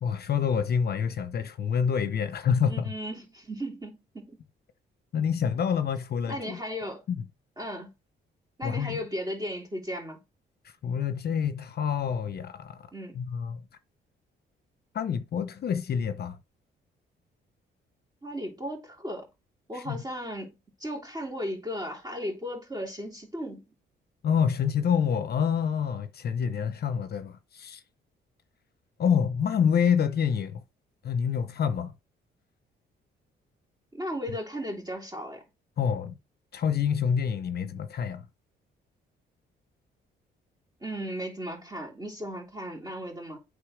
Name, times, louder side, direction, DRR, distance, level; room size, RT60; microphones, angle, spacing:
voice 1, 0.0-2.9 5.1-6.6 7.1-7.2 8.6-9.0 10.8-12.9 13.1-13.6 14.9-16.4 19.7-20.0 24.2-27.8 29.0-30.6 31.0-31.9 35.8-36.1 36.5-38.3, left 7 dB, 55° left, 0.7 m, -27 dB
voice 2, 2.7-4.4 6.3-7.0 7.6-7.9 8.6-10.2 12.9-13.2 18.2-19.3 19.7-20.5 20.8-23.6 33.9-35.4 40.8-43.4, equal, 20° right, 3.0 m, -36 dB
8.5 x 3.6 x 5.0 m
cardioid pair, 90°, 20 cm